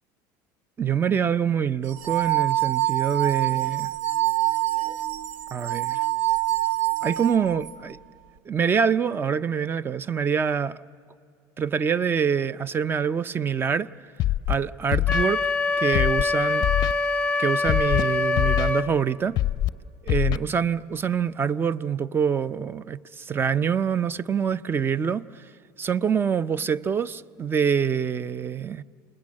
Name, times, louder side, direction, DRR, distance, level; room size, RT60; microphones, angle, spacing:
voice 1, 0.8-3.9 5.5-6.0 7.0-8.0 8.5-10.8 11.6-13.9 14.5-15.4 15.8-16.7 17.4-19.4 20.0-25.4 25.8-28.8, right 7 dB, 20° right, 0.5 m, -25 dB
sound 1, 1.9-7.7, right 18 dB, 80° right, 0.9 m, -25 dB
Scratching (performance technique), 14.2-14.5 14.9-15.2 15.9-16.2 16.6-16.9 17.7-18.0 18.3-18.7 19.4-19.7 20.1-20.4, left 15 dB, 45° left, 0.5 m, -23 dB
Wind instrument woodwind instrument, 15.1-18.9, left 3 dB, 10° left, 1.7 m, -24 dB
28.5 x 20.5 x 8.6 m
supercardioid pair, 130°, 10 cm